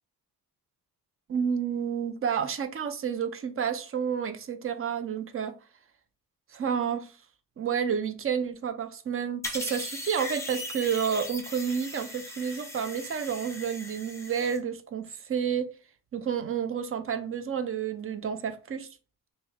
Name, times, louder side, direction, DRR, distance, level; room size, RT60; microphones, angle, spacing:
voice 1, 1.3-5.5 6.5-7.1 7.6-15.7 16.1-18.9, right 7 dB, 40° right, 0.4 m, -30 dB
sound 1, 9.4-14.6, left 1 dB, 10° left, 0.7 m, -39 dB
3.4 x 2.1 x 4.3 m
wide cardioid pair, 170°, 35 cm